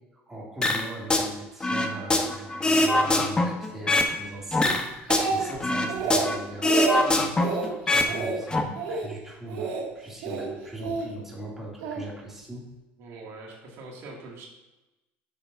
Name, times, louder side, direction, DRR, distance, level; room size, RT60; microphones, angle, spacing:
voice 1, 0.3-12.7, right 1 dB, 5° right, -4 dB, 2.5 m, -40 dB
sound 1, 0.6-1.3 1.6-4.1 4.5-6.4 6.6-8.1 8.4-8.6, left 2 dB, 20° left, 0.9 m, -23 dB
Speech, 4.6-5.6 5.9-6.3 6.6-7.0 7.4-7.7 8.1-8.4 8.7-9.1 9.5-9.8 10.2-11.1 11.8-12.1, right 4 dB, 85° right, 1.9 m, -29 dB
voice 2, 13.0-14.5, right 3 dB, 65° right, -2 dB, 2.2 m, -43 dB
10.0 x 7.1 x 2.6 m, 1.0 s
supercardioid pair, 115°, 5 cm